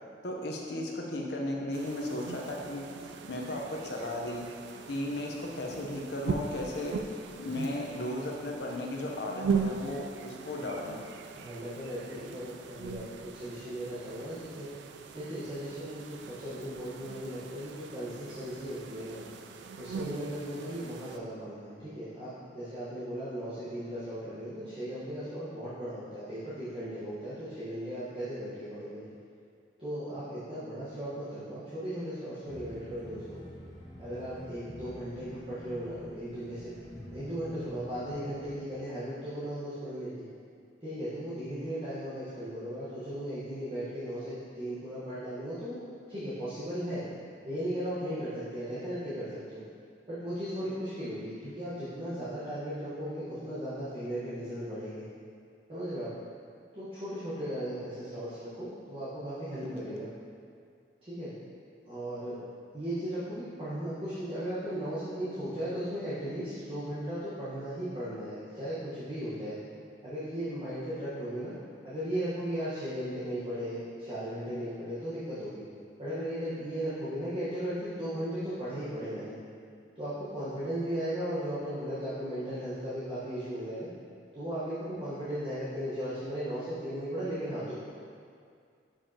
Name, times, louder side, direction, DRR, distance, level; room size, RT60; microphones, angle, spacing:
voice 1, 0.2-4.5 4.9-6.9 7.4-11.0 59.6-59.9, left 1 dB, 65° left, -1 dB, 0.8 m, -35 dB
sound 1, 1.7-21.2, right 5 dB, 75° right, 0.3 m, -40 dB
voice 2, 11.3-14.7 15.1-19.2 19.8-29.0 29.8-33.4 34.0-36.8 37.1-40.1 40.8-45.8 46.1-47.0 47.4-49.6 50.1-55.0 55.7-56.1 56.7-60.1 61.0-61.3 61.9-62.4 62.7-69.5 70.0-71.5 71.8-75.6 76.0-79.4 79.9-83.9 84.3-87.7, equal, 30° right, -13 dB, 1.3 m, -36 dB
sound 2, 32.5-38.6, equal, 20° left, 0.8 m, -47 dB
7.0 x 5.2 x 2.9 m, 2.2 s
head